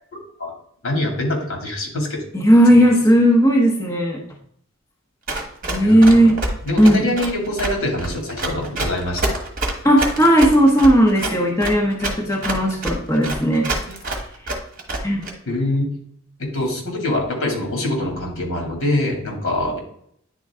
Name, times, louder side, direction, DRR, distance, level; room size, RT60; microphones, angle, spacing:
voice 1, 0.8-2.2 2.7-2.8 5.8-6.3 6.6-9.2 12.4-12.6 15.5-15.9 16.5-19.8, left 1 dB, 70° left, 1 dB, 2.5 m, -24 dB
voice 2, 2.3-4.2 5.7-6.4 6.8-7.0 9.8-13.7 15.0-15.3, equal, 15° left, -2 dB, 0.9 m, -15 dB
Run, 5.3-15.3, right 2 dB, 40° right, 1.2 m, -26 dB
9.6 x 3.8 x 3.6 m, 0.67 s
head